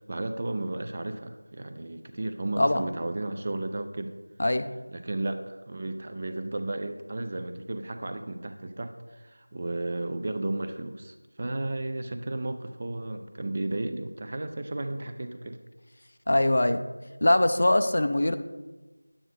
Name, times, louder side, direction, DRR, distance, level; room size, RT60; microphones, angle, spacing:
voice 1, 0.1-4.1 4.9-15.6, right 2 dB, 30° right, 8 dB, 0.5 m, -33 dB
voice 2, 16.3-16.8 17.2-18.4, left 1 dB, 45° left, 9 dB, 0.5 m, -22 dB
9.0 x 8.7 x 3.2 m, 1.2 s
figure-of-eight pair, 170°, 0 cm